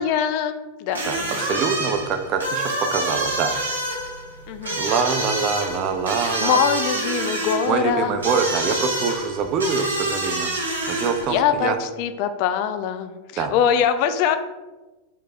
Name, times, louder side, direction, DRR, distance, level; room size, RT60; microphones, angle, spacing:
voice 1, 0.0-1.5 4.5-4.8 6.2-8.2 11.3-14.4, left 8 dB, 45° left, 10 dB, 0.3 m, -23 dB
sound 1, 0.9-11.4, right 2 dB, 75° right, 0.7 m, -27 dB
voice 2, 1.1-3.6 4.7-6.6 7.7-10.5 10.9-11.8 13.4-13.5, right 5 dB, 35° right, 7 dB, 0.4 m, -24 dB
3.4 x 2.7 x 4.0 m, 1.1 s
figure-of-eight pair, 90°, 0 cm